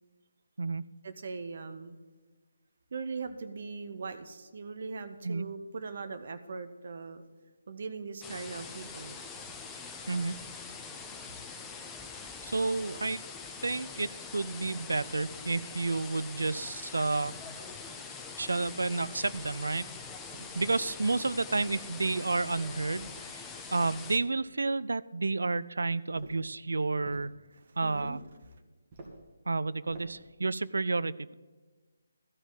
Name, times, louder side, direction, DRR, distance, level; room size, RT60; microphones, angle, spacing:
voice 1, 1.0-2.0 2.9-7.3 7.7-9.2 17.8-18.0 27.7-28.2, right 4 dB, 50° right, 9 dB, 0.8 m, -40 dB
sound 1, 8.2-24.2, left 5 dB, 10° left, 0.7 m, -44 dB
voice 2, 12.4-13.2 13.6-17.4 18.4-19.9 20.5-23.4 23.7-27.3 27.8-28.2 29.5-31.3, right 3 dB, 65° right, 17 dB, 0.4 m, -31 dB
sound 2, 19.3-19.7 20.3-21.0 21.5-22.0 22.6-23.2 23.8-24.5 26.1-26.5 27.0-27.3 27.9-28.3 28.9-29.3 29.9-30.3, right 2 dB, 30° right, 2.0 m, -49 dB
13.0 x 5.1 x 9.1 m, 1.3 s
figure-of-eight pair, 145°, 0 cm